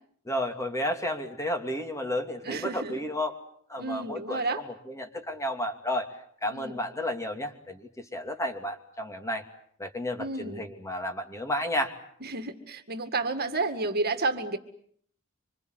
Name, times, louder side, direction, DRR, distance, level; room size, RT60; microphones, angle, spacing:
voice 1, 0.3-3.3 3.7-6.1 6.4-9.4 9.8-11.9, left 1 dB, 15° left, 5 dB, 2.7 m, -32 dB
voice 2, 2.5-3.0 3.8-4.6 6.5-6.8 10.2-10.6 12.2-14.6, right 3 dB, 45° right, 7 dB, 2.1 m, -31 dB
26.5 x 26.0 x 8.1 m, 0.64 s
head